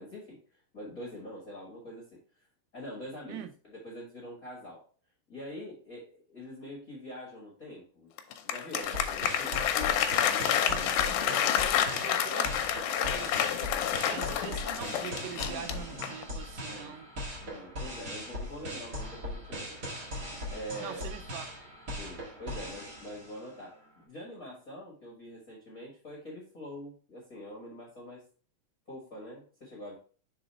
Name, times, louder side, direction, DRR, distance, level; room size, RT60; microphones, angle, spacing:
voice 1, 0.0-2.5 2.7-4.8 5.3-8.1 8.4-9.7 10.1-11.0 11.7-12.1 13.9-14.2 16.6-17.0 17.4-20.1 20.5-21.1 22.0-28.3 28.9-30.0, equal, 45° left, 1.2 m, -45 dB
Applause, 8.2-16.3, left 10 dB, 75° left, 2.0 m, -29 dB
sound 1, 8.8-23.6, left 1 dB, 35° right, 1.9 m, -40 dB
voice 2, 10.7-13.6 14.0-17.1 20.8-21.5, right 10 dB, 80° right, 2.2 m, -43 dB
6.2 x 4.0 x 4.1 m
omnidirectional pair, 4.0 m